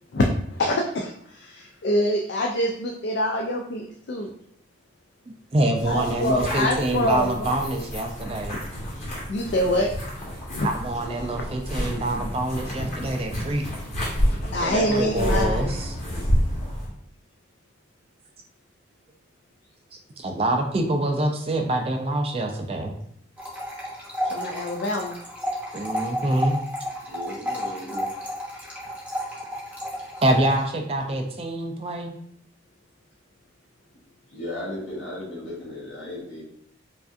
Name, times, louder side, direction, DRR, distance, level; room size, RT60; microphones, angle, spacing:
voice 1, 0.1-4.3 5.9-7.6 8.9-9.9 10.5-10.7 14.3-15.8 24.3-25.2, left 1 dB, 55° left, 1 dB, 0.4 m, -25 dB
voice 2, 5.5-8.6 10.6-13.6 14.6-15.9 19.9-22.9 25.7-26.6 27.9-28.1 30.2-32.1, right 1 dB, 30° right, 4 dB, 0.4 m, -25 dB
sound 1, 5.7-16.9, equal, 35° left, 1.2 m, -29 dB
sound 2, 23.4-30.6, equal, 5° right, 0.7 m, -32 dB
voice 3, 27.0-28.1 29.9-30.0 34.3-36.4, left 1 dB, 75° left, -5 dB, 1.4 m, -36 dB
4.8 x 2.5 x 2.5 m, 0.70 s
head